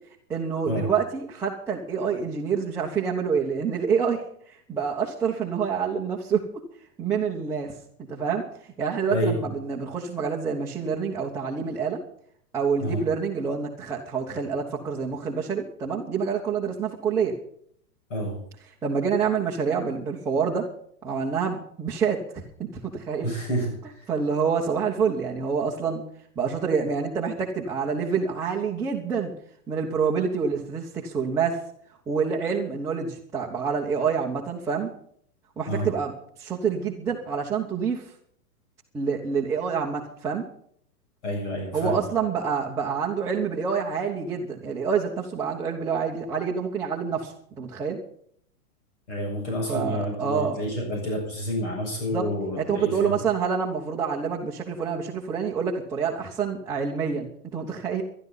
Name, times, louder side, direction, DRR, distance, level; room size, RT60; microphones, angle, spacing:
voice 1, 0.3-6.4 7.0-7.7 8.1-8.4 8.8-12.0 12.5-17.3 18.8-20.7 21.0-23.3 24.1-26.0 26.4-29.3 29.7-31.6 32.1-34.9 35.6-36.1 36.4-38.0 38.9-40.4 41.7-48.0 49.7-50.6 52.1-52.3 52.6-58.0, right 6 dB, 5° right, -5 dB, 1.1 m, -27 dB
voice 2, 23.2-23.7 35.7-35.9 41.2-42.1 49.1-53.2, equal, 50° left, 0 dB, 7.6 m, -29 dB
20.5 x 12.5 x 4.1 m, 0.63 s
hypercardioid pair, 170°, 46 cm